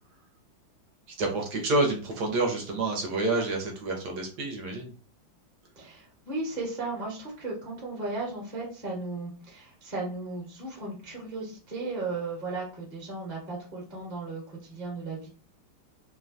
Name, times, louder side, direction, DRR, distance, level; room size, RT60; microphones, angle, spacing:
voice 1, 1.2-4.9, right 2 dB, 70° right, 1 dB, 1.1 m, -28 dB
voice 2, 5.8-15.3, right 3 dB, 30° right, -3 dB, 0.9 m, -35 dB
3.2 x 2.2 x 2.4 m, 0.37 s
omnidirectional pair, 2.2 m